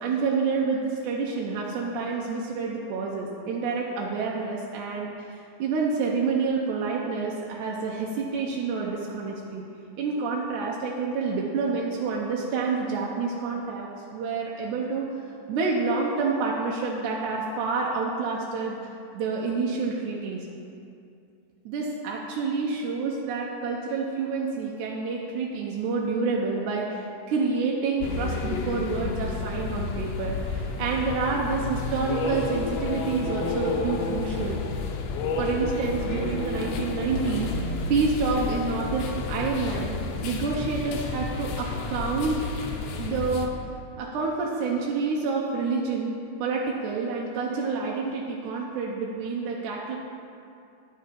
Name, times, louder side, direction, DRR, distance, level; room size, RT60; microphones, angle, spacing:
voice 1, 0.0-9.6 10.0-15.1 15.5-18.8 19.1-20.5 21.7-34.6 35.4-40.0 40.2-42.4 43.0-43.5 44.0-46.1 46.4-50.0, right 4 dB, 85° right, -2 dB, 2.2 m, -28 dB
sound 1, 28.0-43.5, left 3 dB, 70° left, 1.8 m, -30 dB
9.6 x 6.6 x 5.1 m, 2.6 s
omnidirectional pair, 3.5 m